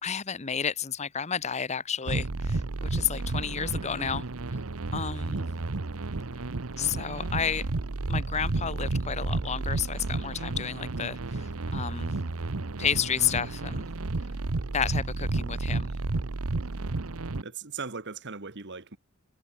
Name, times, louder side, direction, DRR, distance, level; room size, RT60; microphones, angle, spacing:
voice 1, 0.0-4.3 4.9-5.5 6.8-7.7 8.1-12.1 12.8-13.9 14.7-15.9, left 7 dB, 30° left, 0.8 m, -31 dB
sound 1, 2.1-17.4, right 2 dB, 70° right, 1.0 m, -32 dB
voice 2, 5.3-5.7 17.4-19.0, right 5 dB, 50° right, 1.9 m, -39 dB
head